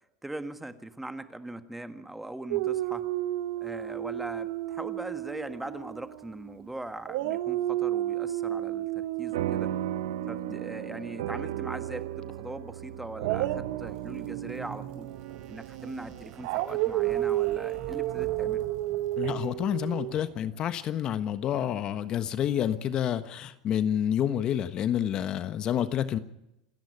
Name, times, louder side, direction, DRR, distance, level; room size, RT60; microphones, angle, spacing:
voice 1, 0.2-3.0 3.6-9.7 10.3-15.1 15.5-18.6, right 1 dB, 5° right, 10 dB, 1.6 m, -40 dB
Dog, 2.5-6.7 7.1-12.1 13.2-20.1, right 14 dB, 70° right, 1.2 m, -32 dB
sound 1, 9.3-18.1, right 12 dB, 85° right, 1.0 m, -37 dB
sound 2, 13.9-20.6, right 8 dB, 50° right, 5.1 m, -46 dB
voice 2, 19.2-26.2, left 10 dB, 40° left, 12 dB, 1.3 m, -28 dB
27.5 x 10.5 x 9.8 m, 0.89 s
supercardioid pair, 115°, 2 cm